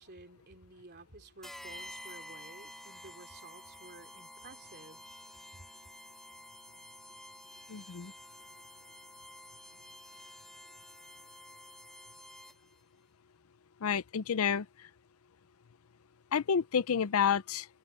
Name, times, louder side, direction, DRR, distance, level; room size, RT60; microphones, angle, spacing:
voice 1, 0.0-5.0 5.5-5.7, right 2 dB, 45° right, 3.3 m, -53 dB
sound 1, 1.4-12.8, equal, ahead, 1.8 m, -50 dB
voice 2, 7.7-8.1 13.8-14.7 16.3-17.7, left 7 dB, 70° left, 0.5 m, -29 dB
head